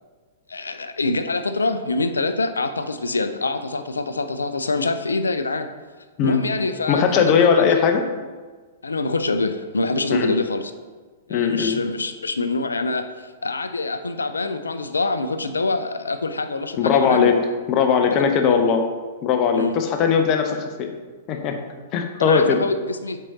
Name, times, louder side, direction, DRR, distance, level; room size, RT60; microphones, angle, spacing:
voice 1, 0.5-5.7 6.2-7.3 8.8-10.7 11.3-17.3 18.2-18.6 19.5-19.8 22.2-23.2, left 3 dB, 80° left, 9 dB, 0.4 m, -25 dB
voice 2, 6.9-8.0 10.1-10.3 11.3-11.8 16.8-17.4 17.7-18.8 19.2-20.9 21.3-21.6 21.9-22.6, left 6 dB, 35° left, 5 dB, 0.7 m, -19 dB
7.5 x 4.6 x 2.7 m, 1.4 s
figure-of-eight pair, 110°, 0 cm